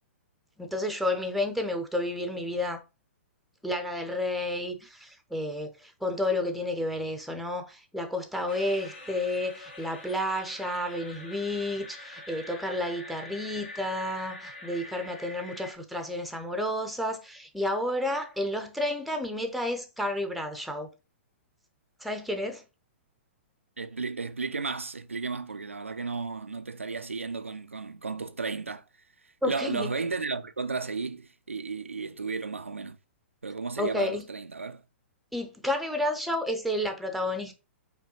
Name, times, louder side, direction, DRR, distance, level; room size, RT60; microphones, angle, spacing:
voice 1, 0.6-2.8 3.6-20.9 22.0-22.6 29.4-29.9 33.8-34.2 35.3-37.5, left 1 dB, ahead, 0.6 m, -31 dB
sound 1, 8.5-15.8, left 1 dB, 60° left, 1.3 m, -45 dB
voice 2, 23.8-28.8 29.4-33.0 33.4-34.8, right 4 dB, 90° right, 0.3 m, -34 dB
5.0 x 2.2 x 2.9 m
figure-of-eight pair, 115°, 7 cm